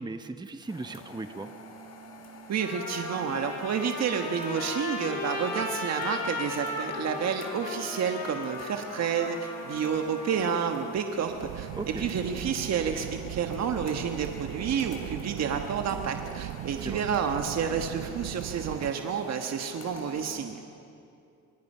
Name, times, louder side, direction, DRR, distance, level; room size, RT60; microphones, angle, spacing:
voice 1, 0.0-1.5 11.8-12.0 16.8-17.0, right 3 dB, 15° right, 9 dB, 0.9 m, -37 dB
sound 1, 0.7-20.4, right 1 dB, 55° left, 3.4 m, -48 dB
Trumpet, 1.9-2.0 2.6-10.5, left 2 dB, 85° left, 7.8 m, -36 dB
voice 2, 2.5-11.7 12.0-20.6, right 7 dB, 60° right, 5 dB, 1.4 m, -30 dB
sound 2, 11.2-18.9, right 17 dB, 90° right, 0.5 m, -38 dB
25.5 x 22.5 x 5.6 m, 2.6 s
cardioid pair, 90°, 30 cm